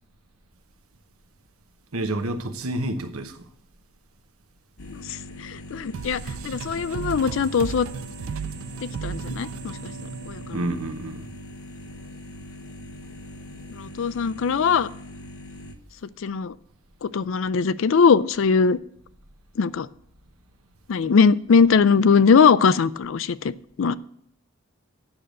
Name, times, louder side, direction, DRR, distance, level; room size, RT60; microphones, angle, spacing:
voice 1, 1.9-3.4 10.5-11.3, right 1 dB, 90° right, 1.1 m, -29 dB
sound 1, 4.8-15.7, left 1 dB, 85° left, 1.1 m, -42 dB
voice 2, 5.4-7.9 8.8-9.7 10.3-10.4 13.7-14.9 16.2-16.5 17.0-18.8 19.6-19.9 20.9-23.4 23.8-23.9, left 5 dB, 65° left, 0.4 m, -20 dB
sound 2, 5.9-11.2, right 6 dB, 70° right, 0.3 m, -35 dB
8.8 x 6.7 x 7.5 m
head